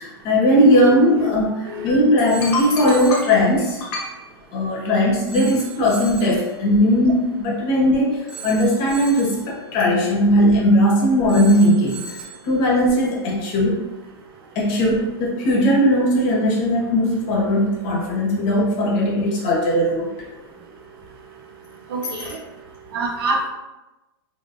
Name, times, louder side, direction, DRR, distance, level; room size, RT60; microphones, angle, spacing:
voice 1, 0.0-4.2 4.5-12.2 12.4-13.8 14.5-20.1 22.2-22.3, equal, 45° left, -3 dB, 1.3 m, -18 dB
Telephone, 2.3-3.4 5.3-6.4 8.3-9.4 11.3-12.4, right 3 dB, 5° right, 0.6 m, -37 dB
voice 2, 21.9-22.3 22.9-23.5, right 2 dB, 65° right, 2 dB, 0.8 m, -25 dB
3.8 x 3.4 x 2.6 m, 1.0 s
hypercardioid pair, 140°, 13 cm